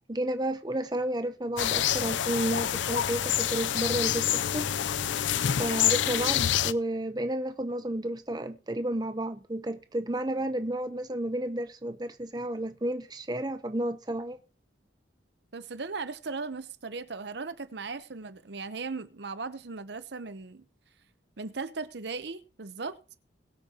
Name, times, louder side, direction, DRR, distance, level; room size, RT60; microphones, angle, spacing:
voice 1, 0.1-4.7 5.6-14.4, right 1 dB, 20° right, 0.7 m, -31 dB
sound 1, 1.6-6.7, left 10 dB, 80° left, 0.5 m, -27 dB
voice 2, 15.5-20.6 21.4-23.0, right 4 dB, 65° right, 0.8 m, -37 dB
21.5 x 8.5 x 2.9 m
head